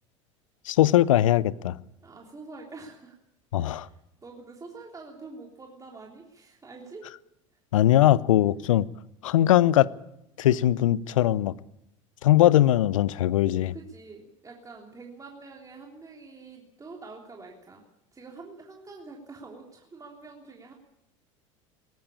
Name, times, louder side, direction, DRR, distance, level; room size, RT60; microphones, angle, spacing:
voice 1, 0.7-1.8 3.5-3.9 7.7-8.9 9.2-9.9 10.4-11.5 12.2-13.7, left 13 dB, 80° left, 21 dB, 0.7 m, -20 dB
voice 2, 2.0-3.1 3.6-3.9 4.2-7.1 13.7-17.8 18.1-20.7, right 3 dB, 20° right, 0 dB, 3.4 m, -46 dB
19.0 x 15.5 x 8.6 m, 0.81 s
hypercardioid pair, 80°, 17 cm